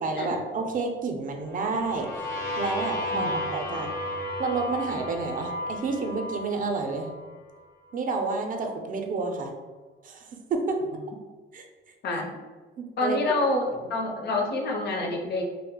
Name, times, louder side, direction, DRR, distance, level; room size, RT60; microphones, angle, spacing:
voice 1, 0.0-2.1 2.6-3.9 4.4-7.1 7.9-9.5 10.0-10.8 11.5-11.6 12.8-13.2, right 4 dB, 45° right, 3 dB, 0.5 m, -29 dB
sound 1, 1.5-7.3, left 1 dB, 85° left, 0.9 m, -33 dB
voice 2, 3.1-3.5 12.0-12.3 13.0-15.4, left 2 dB, 55° left, 1 dB, 0.6 m, -27 dB
2.3 x 2.1 x 3.6 m, 1.4 s
cardioid pair, 90°, 20 cm